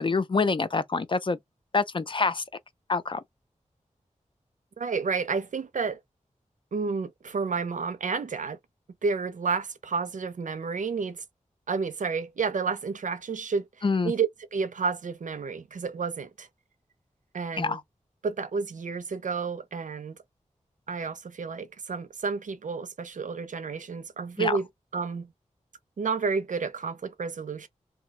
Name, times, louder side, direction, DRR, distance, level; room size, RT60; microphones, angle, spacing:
voice 1, 0.0-1.4 1.7-2.4 2.9-3.2 13.8-14.1 17.6-17.8 24.4-24.6, left 4 dB, 40° left, 0.4 m, -26 dB
voice 2, 4.8-6.0 6.7-8.6 9.0-11.2 11.7-13.7 14.0-16.5 17.3-17.8 18.2-20.1 20.9-24.7 24.9-25.3 26.0-27.7, right 5 dB, 75° right, 0.6 m, -30 dB
2.7 x 2.2 x 4.1 m
wide cardioid pair, 95°, 13 cm